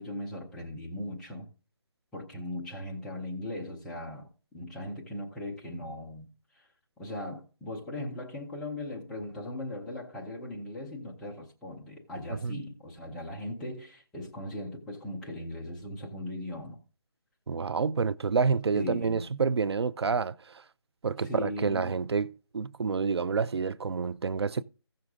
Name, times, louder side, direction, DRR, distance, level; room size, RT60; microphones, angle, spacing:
voice 1, 0.0-1.5 2.1-6.3 6.5-6.7 7.0-16.8 18.7-19.3 21.2-22.0, left 1 dB, 5° left, 0.6 m, -38 dB
voice 2, 17.5-20.4 21.0-24.6, right 5 dB, 70° right, 0.5 m, -28 dB
15.5 x 6.4 x 3.6 m
hypercardioid pair, 170°, 14 cm